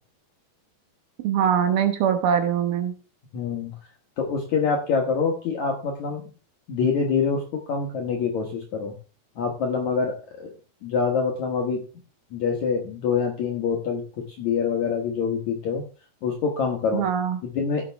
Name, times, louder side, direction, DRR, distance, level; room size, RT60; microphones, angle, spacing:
voice 1, 1.2-2.9 16.9-17.4, right 8 dB, 70° right, 7 dB, 2.8 m, -22 dB
voice 2, 3.3-3.7 4.2-6.2 6.7-7.4 7.7-8.9 9.4-10.5 10.8-11.8 12.3-14.0 14.4-15.8 16.2-17.1 17.4-17.9, left 5 dB, 65° left, 1 dB, 1.9 m, -25 dB
16.0 x 6.8 x 3.4 m, 0.37 s
omnidirectional pair, 4.9 m